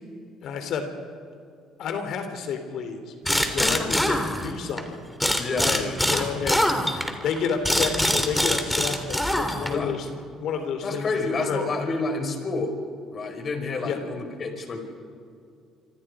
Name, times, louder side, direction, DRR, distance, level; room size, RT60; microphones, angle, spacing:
voice 1, 0.4-0.9 1.8-5.0 5.6-6.7 7.2-10.1 10.4-11.6 13.8-14.0, left 6 dB, 65° left, 7 dB, 3.0 m, -30 dB
sound 1, 3.2-4.8 5.2-9.9, equal, 5° left, 3.2 m, -24 dB
voice 2, 3.5-3.9 5.4-6.1 9.6-10.0 10.8-12.7 13.1-14.8, left 3 dB, 45° left, 5 dB, 4.8 m, -29 dB
26.0 x 25.5 x 4.9 m, 2.5 s
hypercardioid pair, 60°, 0 cm